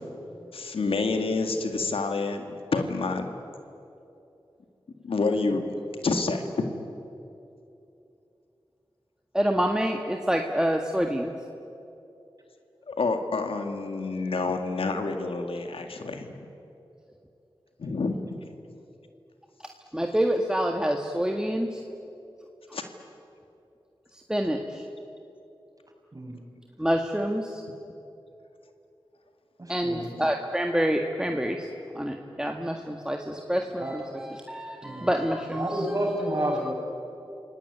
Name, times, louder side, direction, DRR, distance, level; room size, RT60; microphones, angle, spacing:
voice 1, 0.5-3.3 5.0-5.7 6.0-6.5 12.9-16.5 17.8-18.4 22.7-22.8, left 3 dB, 85° left, 6 dB, 2.0 m, -28 dB
voice 2, 9.3-11.3 19.9-21.8 24.1-24.9 26.8-27.6 29.7-31.7 32.0-36.0, equal, 10° right, 3 dB, 1.8 m, -27 dB
voice 3, 26.1-26.4 29.6-30.1 33.8-33.9 34.8-35.1 35.6-36.7, right 1 dB, 40° right, 1 dB, 6.2 m, -30 dB
28.5 x 18.0 x 9.6 m, 2.8 s
cardioid pair, 45°, 9 cm